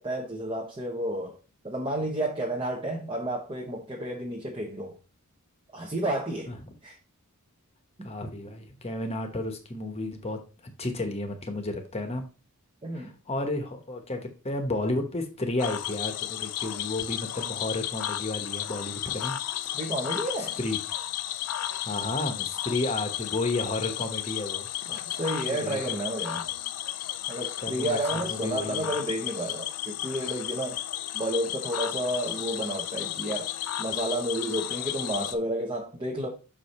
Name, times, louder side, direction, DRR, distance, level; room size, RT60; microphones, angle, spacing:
voice 1, 0.0-1.4 1.6-4.9 5.7-6.5 6.8-7.0 8.0-8.1 12.8-13.1 19.7-20.6 24.9-26.5 27.3-30.8 31.1-33.5 33.8-36.3, right 1 dB, 25° right, 0.8 m, -31 dB
voice 2, 8.0-12.2 12.9-19.4 20.6-20.8 21.8-24.7 25.6-26.0 27.6-28.9, left 2 dB, 30° left, 1.0 m, -32 dB
Cricket / Frog, 15.6-35.3, left 12 dB, 90° left, 0.5 m, -33 dB
6.2 x 4.8 x 4.1 m
head